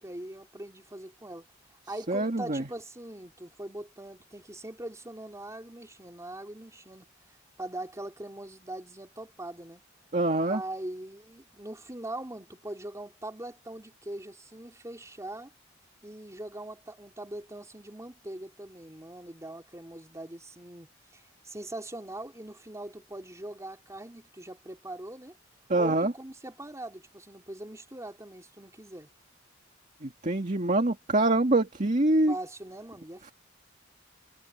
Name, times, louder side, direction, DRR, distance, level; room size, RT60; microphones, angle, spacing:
voice 1, 0.0-1.5 1.9-7.1 7.6-9.8 10.4-15.5 16.0-20.9 21.1-25.4 25.8-29.1 32.3-33.3, right 1 dB, 15° right, 3.7 m, -41 dB
voice 2, 2.1-2.7 10.1-10.6 25.7-26.1 30.0-32.3, right 2 dB, 40° right, 2.0 m, -25 dB
head